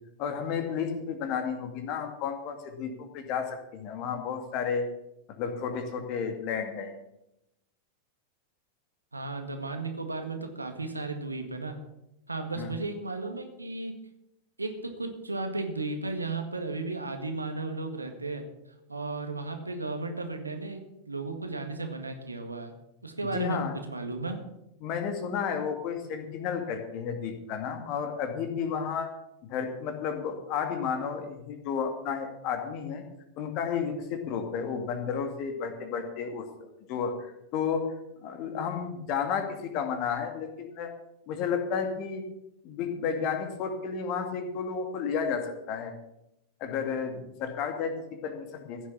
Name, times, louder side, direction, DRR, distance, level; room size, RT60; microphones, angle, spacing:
voice 1, 0.2-4.9 5.3-6.9 12.6-12.7 23.3-23.7 24.8-29.1 29.5-33.0 33.4-37.9 38.2-40.9 41.3-42.2 42.6-45.9 46.6-48.8, left 6 dB, 40° left, 6 dB, 2.3 m, -32 dB
voice 2, 9.1-11.7 12.3-13.9 14.6-18.4 18.9-20.8 21.1-22.7 23.0-23.6 23.9-24.4, right 3 dB, 80° right, 5 dB, 1.8 m, -34 dB
15.5 x 7.4 x 7.2 m, 0.86 s
figure-of-eight pair, 90°, 0 cm